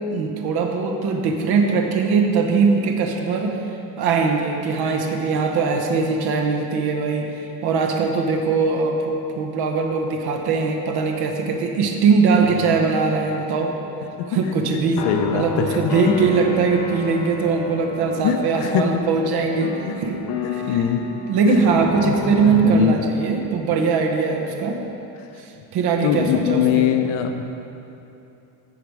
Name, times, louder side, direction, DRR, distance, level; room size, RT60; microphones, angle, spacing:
voice 1, 0.1-3.6 4.0-13.7 14.3-15.0 15.3-20.2 20.5-20.9 21.3-24.8 25.4-26.9, right 4 dB, 55° right, 2 dB, 1.0 m, -21 dB
sound 1, 14.9-23.4, left 2 dB, 55° left, 1.1 m, -31 dB
voice 2, 15.0-15.8 18.2-18.9 20.7-21.1 21.5-21.7 22.0-22.9 26.0-27.4, left 9 dB, 85° left, 7 dB, 0.8 m, -21 dB
14.5 x 5.0 x 4.7 m, 2.8 s
cardioid pair, 160°, 45 cm